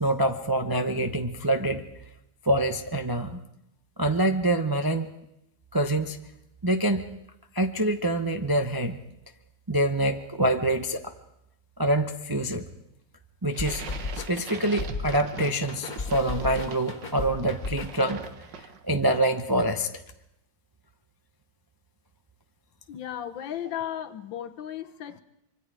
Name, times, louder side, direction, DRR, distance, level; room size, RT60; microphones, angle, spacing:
voice 1, 0.0-1.9 2.4-3.4 4.0-5.1 5.7-6.2 6.6-7.1 7.5-9.0 9.7-11.1 11.8-12.7 13.4-13.8 14.1-18.2 18.6-19.9, right 1 dB, 30° right, 6 dB, 0.4 m, -25 dB
sound 1, 13.5-19.0, right 7 dB, 70° right, 1.8 m, -41 dB
sound 2, 13.6-18.5, left 3 dB, 25° left, 1.6 m, -36 dB
voice 2, 22.9-25.2, left 10 dB, 80° left, 9 dB, 1.8 m, -35 dB
25.5 x 24.0 x 4.9 m, 0.81 s
omnidirectional pair, 2.1 m